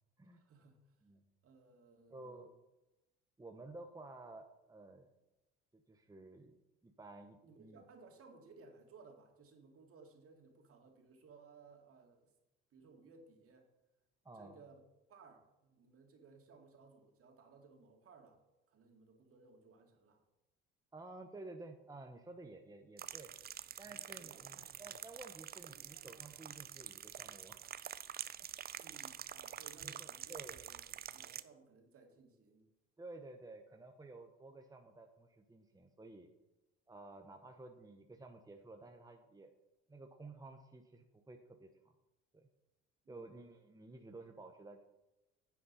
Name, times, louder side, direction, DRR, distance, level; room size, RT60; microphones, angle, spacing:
voice 1, 0.2-0.8 1.4-2.5 7.4-12.3 12.7-13.7 14.3-14.8 15.1-18.4 18.7-20.2 24.2-24.4 28.8-32.7 43.0-43.3, right 4 dB, 50° right, 3 dB, 2.3 m, -61 dB
voice 2, 2.1-2.5 3.4-5.1 5.7-6.5 6.8-7.8 14.2-14.6 20.9-23.3 23.8-27.6 29.8-30.6 33.0-36.3 36.9-39.5 39.9-41.7 42.3-42.5 43.1-44.8, right 2 dB, 10° right, 4 dB, 0.9 m, -53 dB
sound 1, 23.0-31.4, right 9 dB, 35° right, 0.5 m, -47 dB
9.6 x 8.4 x 4.1 m, 0.99 s
supercardioid pair, 80°, 29 cm